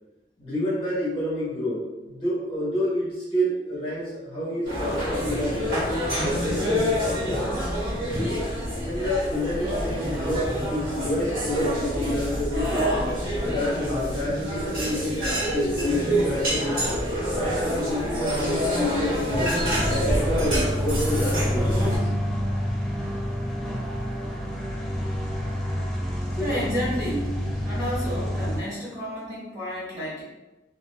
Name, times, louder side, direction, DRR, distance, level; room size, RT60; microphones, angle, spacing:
voice 1, 0.4-5.9 6.2-7.7 8.8-12.9 13.4-15.2 15.5-17.0 17.4-19.6 19.8-22.1 26.3-26.6, left 1 dB, 30° left, -8 dB, 0.8 m, -29 dB
sound 1, 4.6-22.0, equal, 50° right, 1.1 m, -27 dB
sound 2, 19.3-28.6, equal, ahead, 0.4 m, -28 dB
voice 2, 26.4-27.4 27.6-30.2, equal, 20° right, -10 dB, 1.1 m, -30 dB
2.4 x 2.4 x 2.4 m, 1.1 s
head